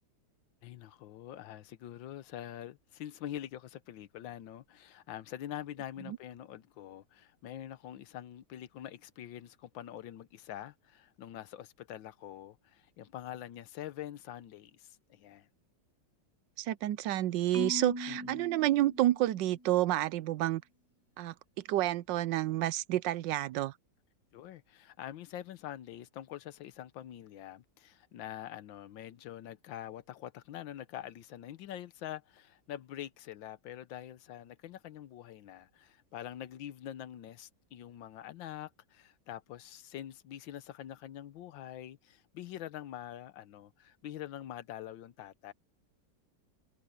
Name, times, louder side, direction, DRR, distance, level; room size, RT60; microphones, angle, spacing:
voice 1, 0.6-15.5 18.1-18.5 24.3-45.5, left 11 dB, 90° left, 1.6 m, -45 dB
voice 2, 16.6-20.6 21.2-21.3 21.7-23.7, right 14 dB, 80° right, 1.3 m, -29 dB
Marimba xylophone, 17.5-19.7, equal, 15° right, 0.6 m, -41 dB
omnidirectional pair, 2.0 m